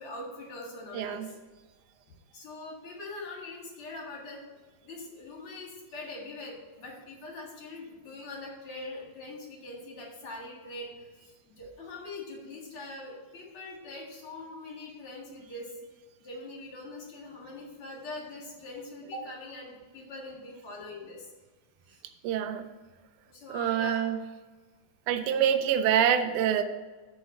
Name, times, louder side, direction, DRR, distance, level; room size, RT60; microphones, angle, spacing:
voice 1, 0.0-1.4 2.3-4.4 4.8-15.7 16.2-21.3 21.9-22.0 23.3-24.0, left 2 dB, 45° left, -2 dB, 2.3 m, -42 dB
voice 2, 0.9-1.3 22.2-22.7 23.5-24.2 25.1-26.6, right 9 dB, 80° right, 8 dB, 1.8 m, -26 dB
6.4 x 5.2 x 7.0 m, 1.3 s
omnidirectional pair, 4.1 m